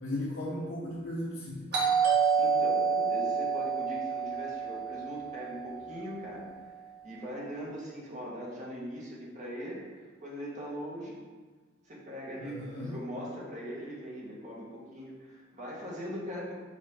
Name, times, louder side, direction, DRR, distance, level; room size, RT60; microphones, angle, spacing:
voice 1, 0.0-1.7 12.4-12.9, left 1 dB, 60° left, -8 dB, 1.0 m, -36 dB
Doorbell, 1.7-6.3, right 5 dB, 55° right, 1.5 m, -29 dB
voice 2, 2.4-6.6 7.0-11.2 11.8-16.5, equal, 40° right, -5 dB, 1.5 m, -41 dB
5.2 x 5.0 x 3.7 m, 1.4 s
head